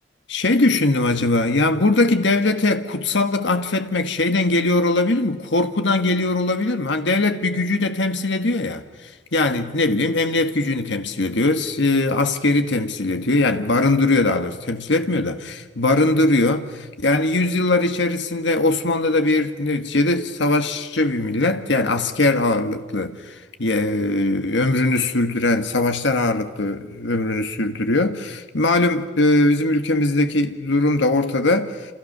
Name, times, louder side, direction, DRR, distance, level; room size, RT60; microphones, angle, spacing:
voice 1, 0.3-31.9, left 2 dB, 70° left, 1.6 m, -21 dB
29.5 x 28.5 x 6.7 m
head